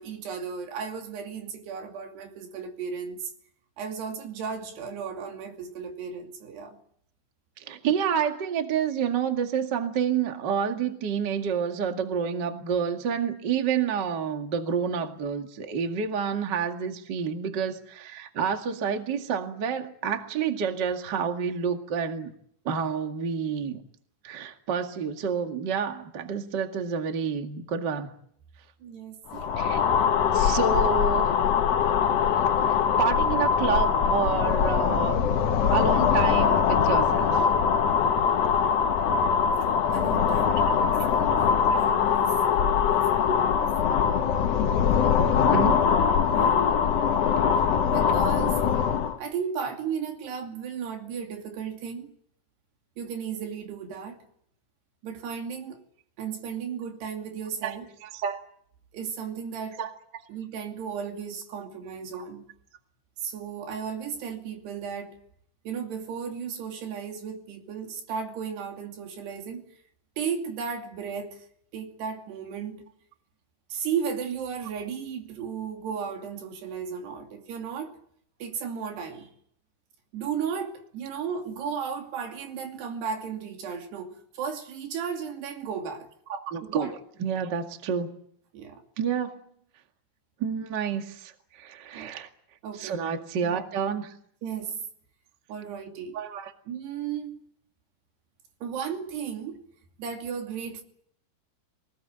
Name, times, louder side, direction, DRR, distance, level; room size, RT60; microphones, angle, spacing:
voice 1, 0.0-3.3 3.8-6.8 28.8-29.4 39.9-41.4 41.7-43.7 46.3-46.7 47.9-48.6 49.2-52.1 53.0-54.2 55.0-55.8 56.2-57.9 58.9-59.8 60.3-62.5 63.2-65.2 65.6-69.7 70.2-71.5 71.7-72.9 73.7-78.0 78.4-79.3 80.1-86.1 86.6-86.9 88.5-88.8 91.9-92.1 92.6-93.0 93.4-93.6 94.4-94.8 95.5-96.2 96.7-97.4 98.6-99.6 100.0-100.8, right 7 dB, 85° right, 4.8 m, -35 dB
voice 2, 7.6-22.3 22.6-23.8 24.2-28.1 29.6-29.8 30.3-31.3 32.7-35.2 35.7-37.4 40.9-41.1 41.7-41.9 45.3-45.9 57.6-57.7 58.0-58.4 59.8-59.9 86.3-86.9 87.2-88.2 89.0-89.4 90.4-92.3 92.8-94.2 96.1-96.5, right 7 dB, 35° right, 1.8 m, -29 dB
sound 1, 29.3-49.2, left 7 dB, 90° left, 1.4 m, -22 dB
24.5 x 19.5 x 9.1 m
omnidirectional pair, 4.7 m